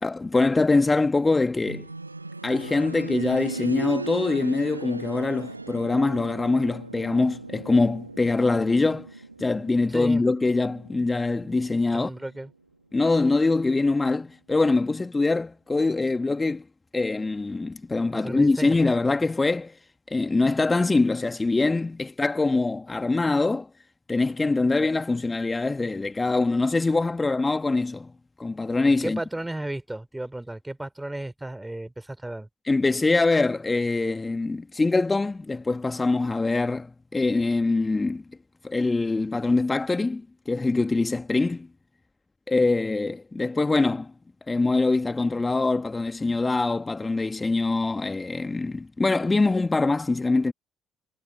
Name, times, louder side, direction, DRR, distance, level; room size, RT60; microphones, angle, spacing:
voice 1, 0.0-1.9 2.4-9.1 9.4-12.1 12.9-16.6 16.9-19.7 20.1-23.7 24.1-28.1 28.4-29.2 32.7-38.2 38.6-41.7 42.5-44.1 44.5-50.5, left 3 dB, 20° left, 1.7 m, -23 dB
sound 1, 1.7-12.4 12.7-12.8 13.7-13.8, right 3 dB, 90° right, 1.0 m, -38 dB
voice 2, 9.9-10.2 11.9-12.5 18.1-18.8 29.0-32.5, right 1 dB, 10° right, 2.9 m, -34 dB
figure-of-eight pair, 50°, 0 cm